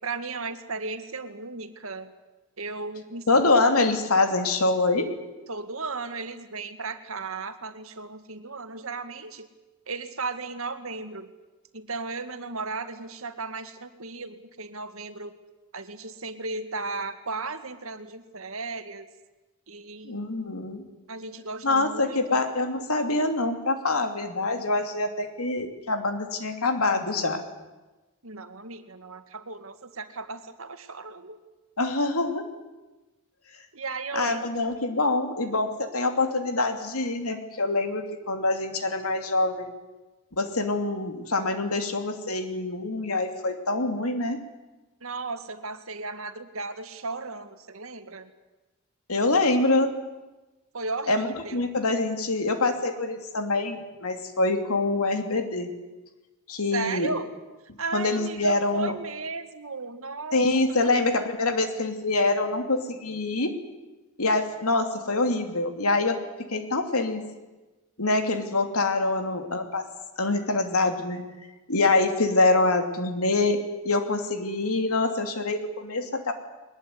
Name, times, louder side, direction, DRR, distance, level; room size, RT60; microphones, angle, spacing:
voice 1, 0.0-2.1 2.6-3.6 5.5-9.5 9.9-11.3 11.7-15.4 15.7-19.1 19.7-20.2 21.1-22.4 28.2-31.4 33.7-34.5 45.0-48.3 50.7-51.7 56.7-57.3 57.8-60.9, right 3 dB, 75° right, 8 dB, 1.9 m, -35 dB
voice 2, 3.3-5.1 20.0-20.8 21.6-27.4 31.8-32.5 34.1-39.7 40.4-44.4 49.1-49.9 51.1-51.3 51.5-55.7 56.5-57.1 57.9-58.9 60.3-63.5 64.2-67.2 68.0-69.8 70.2-71.2 71.7-73.6 73.8-76.3, left 2 dB, 90° left, 6 dB, 2.9 m, -25 dB
21.5 x 20.5 x 9.7 m, 1.1 s
head